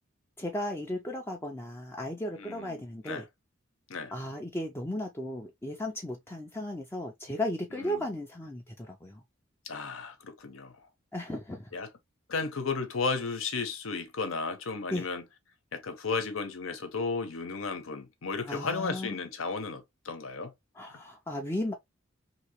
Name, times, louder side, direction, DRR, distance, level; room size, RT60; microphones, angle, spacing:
voice 1, 0.4-3.2 4.1-9.2 11.1-11.7 14.9-15.1 18.5-19.2 20.8-21.7, left 1 dB, 10° left, 0.4 m, -35 dB
voice 2, 2.4-3.3 3.9-4.1 7.7-8.0 9.6-10.9 11.7-11.9 12.3-15.2 15.7-20.5 20.9-21.0, left 4 dB, 80° left, 0.9 m, -34 dB
2.9 x 2.8 x 2.9 m
head